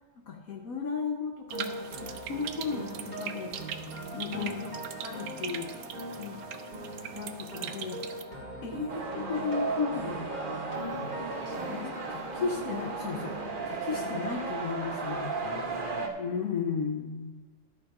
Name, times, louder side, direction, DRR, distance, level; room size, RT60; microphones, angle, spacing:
voice 1, 0.3-3.5 4.1-4.7 5.0-5.7 6.2-6.4 7.1-8.0 8.6-10.3 11.5-13.4 13.7-15.3 16.2-17.4, left 5 dB, 60° left, 1 dB, 1.1 m, -35 dB
sound 1, 1.5-14.3, right 2 dB, 25° right, 1.8 m, -40 dB
sound 2, 1.5-8.2, right 9 dB, 70° right, 0.9 m, -41 dB
sound 3, 8.9-16.1, right 3 dB, 40° right, 0.7 m, -35 dB
voice 2, 10.9-12.1 15.4-16.2, left 3 dB, 30° left, -4 dB, 1.3 m, -46 dB
13.0 x 4.7 x 4.8 m, 1.4 s
omnidirectional pair, 1.9 m